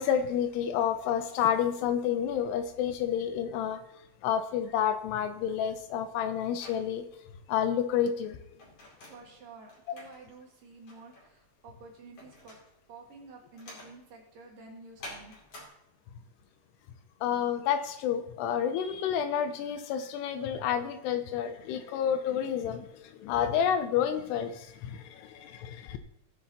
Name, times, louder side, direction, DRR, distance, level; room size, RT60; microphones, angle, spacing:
voice 1, 0.0-3.8 4.2-7.1 7.5-8.4 9.9-10.0 17.2-26.0, left 9 dB, 80° left, 2.6 m, -29 dB
sound 1, 5.7-15.7, left 1 dB, 40° left, 3.2 m, -51 dB
voice 2, 9.0-12.6 12.9-15.3, right 3 dB, 60° right, 3.1 m, -50 dB
18.5 x 7.0 x 2.9 m
omnidirectional pair, 5.0 m